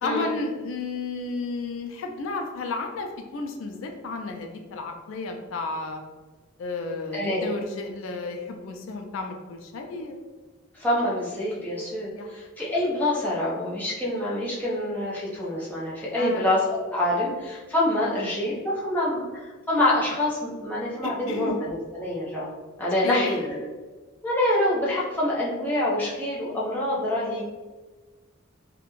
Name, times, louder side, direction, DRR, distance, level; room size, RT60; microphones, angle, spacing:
voice 1, 0.0-6.0 6.6-10.2 12.2-12.3 16.2-16.5 21.0-21.6 23.0-23.4, left 3 dB, 80° left, 3 dB, 0.3 m, -32 dB
voice 2, 7.1-7.5 10.7-22.5 22.8-23.6 24.2-27.4, left 1 dB, 10° left, -8 dB, 0.6 m, -26 dB
2.4 x 2.1 x 3.0 m, 1.3 s
head